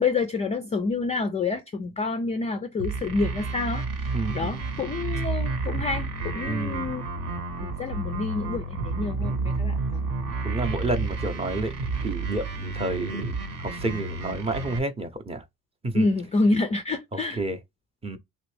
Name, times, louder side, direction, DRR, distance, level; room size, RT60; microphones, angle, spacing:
voice 1, 0.0-7.1 7.6-10.6 15.9-17.4, left 3 dB, 20° left, 0.3 m, -28 dB
sound 1, 2.8-14.8, right 3 dB, 60° right, 1.0 m, -30 dB
voice 2, 4.1-4.6 6.5-6.9 9.2-9.5 10.4-11.7 12.0-15.4 15.8-16.1 17.4-17.6 18.0-18.2, right 2 dB, 15° right, 0.6 m, -30 dB
3.4 x 2.5 x 3.2 m
supercardioid pair, 95°, 37 cm